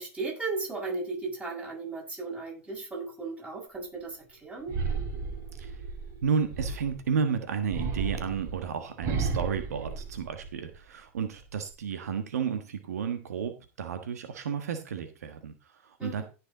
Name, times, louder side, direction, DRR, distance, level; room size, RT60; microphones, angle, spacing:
voice 1, 0.0-4.7 16.0-16.2, right 3 dB, 15° right, 7.4 m, -36 dB
sound 1, 4.7-7.1 7.7-10.8 11.2-11.7, right 4 dB, 40° right, 3.2 m, -33 dB
voice 2, 5.5-5.8 6.2-16.2, right 6 dB, 80° right, 1.4 m, -32 dB
15.5 x 6.6 x 3.9 m
hypercardioid pair, 110°, 8 cm